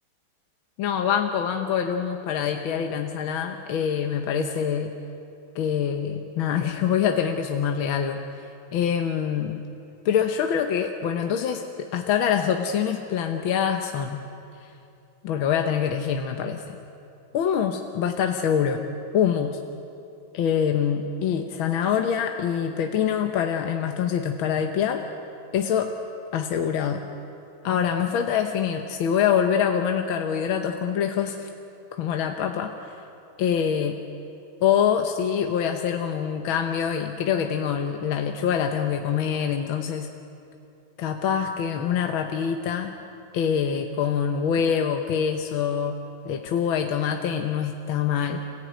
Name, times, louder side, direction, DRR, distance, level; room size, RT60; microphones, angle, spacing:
voice 1, 0.8-4.9 5.6-9.6 10.1-14.3 14.6-14.7 15.2-16.8 17.3-18.9 19.1-19.6 20.3-25.0 25.5-25.9 26.3-27.0 27.6-31.5 32.0-33.0 33.4-34.0 34.6-40.1 41.0-43.0 43.3-48.4, left 8 dB, 80° left, 5 dB, 1.8 m, -25 dB
29.0 x 16.0 x 9.2 m, 2.7 s
omnidirectional pair, 2.2 m